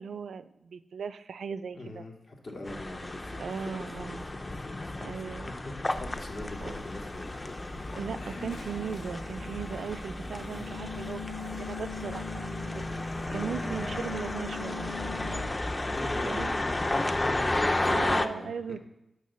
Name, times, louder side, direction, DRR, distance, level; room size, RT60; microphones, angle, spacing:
voice 1, 0.0-2.0 3.4-4.2 5.0-5.5 6.6-6.7 8.0-12.9 13.3-14.9 16.2-16.5 17.9-18.8, right 6 dB, 85° right, 14 dB, 0.4 m, -37 dB
voice 2, 1.7-7.8 8.2-8.5 15.8-18.8, left 2 dB, 70° left, 0 dB, 2.0 m, -43 dB
sound 1, 2.7-18.3, left 2 dB, 30° left, 0.5 m, -33 dB
sound 2, 6.0-15.4, left 2 dB, 85° left, 1.0 m, -47 dB
sound 3, 7.5-15.5, left 3 dB, 50° left, 1.4 m, -40 dB
6.4 x 5.0 x 6.8 m, 0.90 s
cardioid pair, 60°, 0 cm